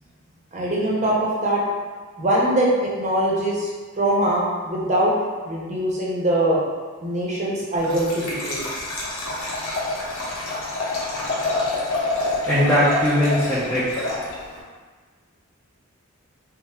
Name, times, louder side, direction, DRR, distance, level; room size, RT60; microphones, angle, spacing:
voice 1, 0.5-1.6 2.2-3.7 4.0-5.1 5.4-6.6 7.0-8.6, right 1 dB, 35° right, -5 dB, 0.6 m, -22 dB
Liquid, 7.8-14.6, left 2 dB, 80° left, 0.7 m, -27 dB
voice 2, 11.7-12.1 12.5-14.0, equal, 10° left, -10 dB, 0.4 m, -21 dB
3.3 x 2.0 x 2.8 m, 1.4 s
head